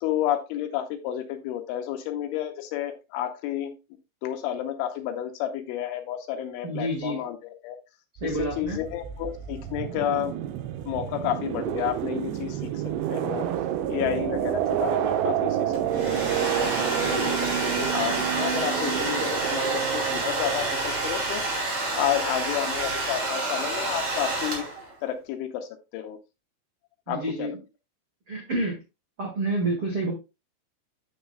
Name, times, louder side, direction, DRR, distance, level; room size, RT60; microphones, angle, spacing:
voice 1, 0.0-3.8 4.2-7.8 8.2-10.3 10.9-12.8 13.1-13.5 13.9-21.4 21.9-24.7 25.0-26.2 27.1-27.6, left 11 dB, 80° left, 6 dB, 3.0 m, -31 dB
voice 2, 6.6-7.2 8.2-8.8 27.1-27.5 28.3-28.8 29.2-30.1, right 2 dB, 65° right, -2 dB, 1.3 m, -28 dB
sound 1, 8.2-21.6, right 11 dB, 85° right, 2.6 m, -29 dB
Domestic sounds home sounds, 15.7-24.9, right 2 dB, 40° right, 3.0 m, -29 dB
9.9 x 7.1 x 2.2 m, 0.26 s
omnidirectional pair, 5.9 m